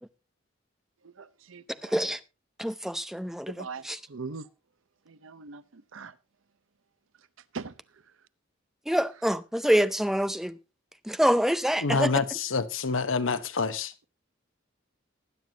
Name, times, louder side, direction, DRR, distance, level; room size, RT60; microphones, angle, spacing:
voice 1, 1.0-1.9 3.5-4.5 5.1-6.1 7.5-7.7, right 4 dB, 85° right, 0.8 m, -41 dB
voice 2, 2.6-4.0 8.9-10.5 11.1-12.1, equal, ahead, 0.5 m, -26 dB
voice 3, 11.8-13.9, left 4 dB, 85° left, 1.0 m, -27 dB
20.0 x 9.3 x 2.9 m
head